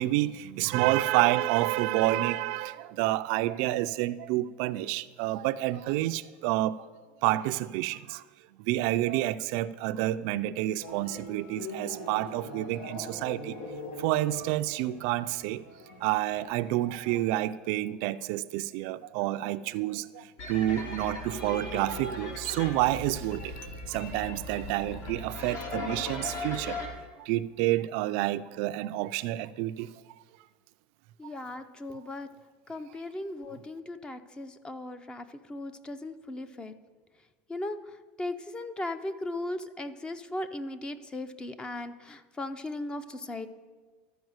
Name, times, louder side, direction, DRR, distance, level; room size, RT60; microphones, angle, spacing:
voice 1, 0.0-6.8 7.2-8.2 8.6-13.6 14.0-15.6 16.0-23.5 23.9-26.9 27.2-29.9, right 15 dB, 65° right, 0.4 m, -29 dB
sound 1, 10.8-17.3, left 1 dB, 85° left, 1.9 m, -43 dB
sound 2, 20.4-26.9, left 2 dB, 55° left, 2.1 m, -38 dB
voice 2, 31.2-32.3 32.7-36.7 37.5-37.8 38.2-43.5, left 2 dB, 15° left, 0.6 m, -37 dB
13.0 x 4.8 x 7.9 m
supercardioid pair, 130°, 5 cm